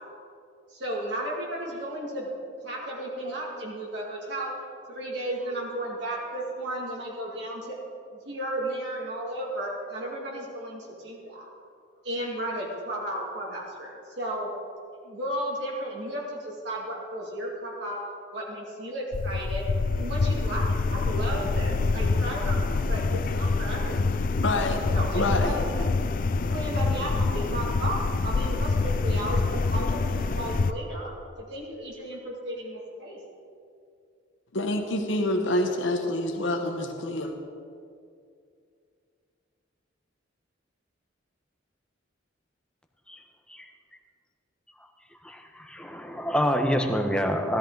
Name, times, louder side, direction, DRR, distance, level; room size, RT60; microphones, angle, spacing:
voice 1, 0.7-2.4 2.6-4.6 4.9-7.8 8.1-11.5 12.0-14.5 15.0-18.1 18.3-19.7 20.0-24.1 24.9-25.8 26.4-33.2, right 1 dB, 65° right, -3 dB, 2.2 m, -34 dB
sound 1, 19.1-30.7, left 3 dB, 45° left, 0.4 m, -26 dB
voice 2, 24.4-24.8 25.1-25.6 34.5-37.3, left 1 dB, 80° left, 3 dB, 1.1 m, -27 dB
voice 3, 45.2-47.6, equal, 5° left, 4 dB, 0.9 m, -27 dB
16.0 x 13.0 x 3.9 m, 2.4 s
head